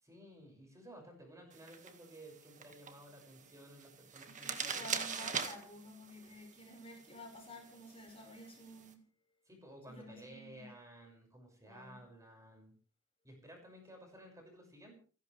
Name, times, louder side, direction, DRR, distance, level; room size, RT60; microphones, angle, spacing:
voice 1, 0.0-4.9 9.5-12.7 13.2-14.9, right 1 dB, 15° right, 2 dB, 6.4 m, -55 dB
sound 1, 1.5-8.9, right 6 dB, 35° right, 1.9 m, -44 dB
voice 2, 4.4-9.0 9.9-10.7 11.6-12.0, left 1 dB, 25° left, 1 dB, 5.5 m, -52 dB
29.5 x 12.0 x 3.5 m, 0.41 s
head